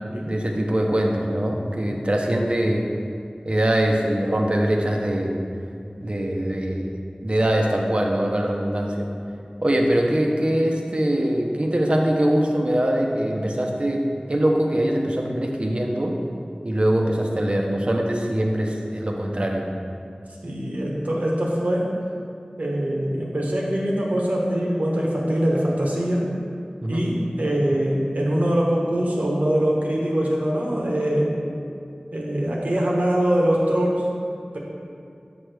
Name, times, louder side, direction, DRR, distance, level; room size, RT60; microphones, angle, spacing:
voice 1, 0.3-2.9 3.4-5.4 6.0-6.9 7.2-9.1 9.6-16.1 16.6-19.7 26.8-27.1, right 1 dB, 45° right, 1 dB, 0.8 m, -22 dB
voice 2, 20.4-21.9 22.6-26.2 26.9-31.3 32.1-34.0, right 1 dB, 75° right, -3 dB, 1.2 m, -23 dB
6.9 x 6.2 x 3.4 m, 2.4 s
wide cardioid pair, 40°, 3 cm